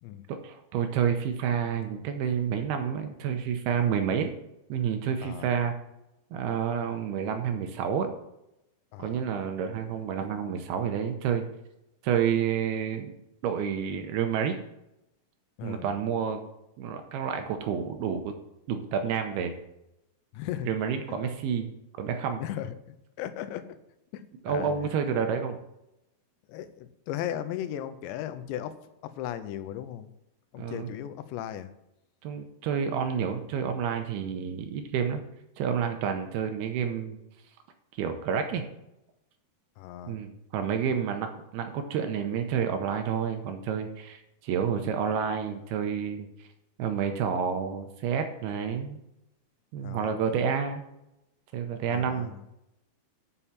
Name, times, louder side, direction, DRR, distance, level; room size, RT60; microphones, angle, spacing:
voice 1, 0.3-4.3 4.7-5.7 6.3-8.1 9.0-11.5 12.0-13.1 13.4-14.6 15.6-16.4 16.8-18.3 18.7-19.6 20.6-21.7 22.0-22.4 24.4-25.6 30.6-30.9 32.2-35.2 35.6-37.2 38.0-38.6 40.1-46.3 46.8-49.0 49.7-50.8 51.5-52.4, right 7 dB, 80° right, 6 dB, 2.5 m, -29 dB
voice 2, 15.6-15.9 20.3-20.7 21.2-21.3 22.4-22.7 23.2-23.7 24.1-24.9 26.5-28.8 29.0-30.1 30.5-31.7 39.8-40.2 49.8-50.1 51.9-52.4, left 11 dB, 90° left, 11 dB, 2.9 m, -36 dB
8.3 x 5.6 x 7.2 m, 0.86 s
omnidirectional pair, 5.0 m